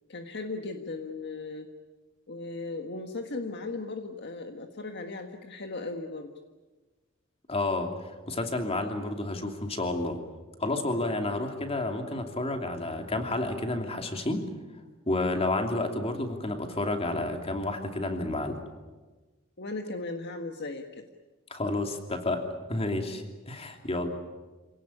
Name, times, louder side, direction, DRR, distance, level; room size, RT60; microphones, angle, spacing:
voice 1, 0.1-1.7 2.3-6.3 19.6-21.0, left 3 dB, 55° left, 5 dB, 1.6 m, -37 dB
voice 2, 7.5-10.2 10.6-14.4 15.1-18.6 21.5-24.1, left 2 dB, 30° left, 4 dB, 2.9 m, -30 dB
26.5 x 18.0 x 9.9 m, 1.2 s
head